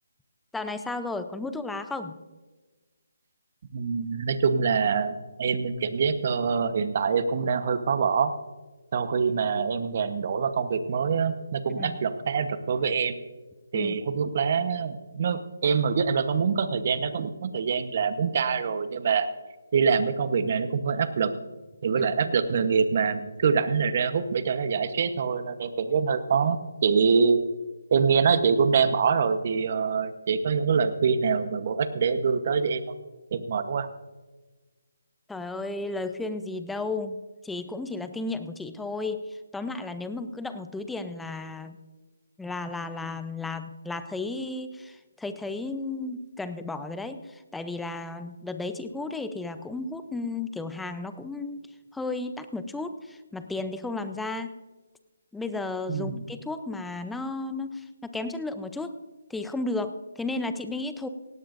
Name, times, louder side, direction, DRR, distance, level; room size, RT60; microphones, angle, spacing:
voice 1, 0.5-2.2 11.8-12.0 13.7-14.0 22.0-22.1 35.3-41.8 42.4-54.5 55.3-59.0 59.3-61.1, left 3 dB, 5° left, 9 dB, 0.6 m, -34 dB
voice 2, 3.7-8.3 8.9-13.2 13.7-19.3 19.7-21.3 21.8-27.4 27.9-32.8 33.3-33.9 55.9-56.2, right 6 dB, 45° right, 11 dB, 1.0 m, -25 dB
17.5 x 17.0 x 2.6 m, 1.2 s
figure-of-eight pair, 160°, 0 cm